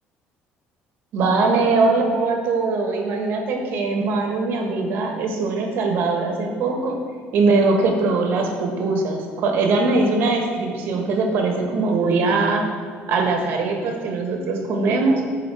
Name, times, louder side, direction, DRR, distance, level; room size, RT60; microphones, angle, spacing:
voice 1, 1.1-7.0 7.3-12.7 13.1-15.2, right 3 dB, 60° right, 2 dB, 1.3 m, -21 dB
10.0 x 4.7 x 4.8 m, 2.1 s
cardioid pair, 150°, 4 cm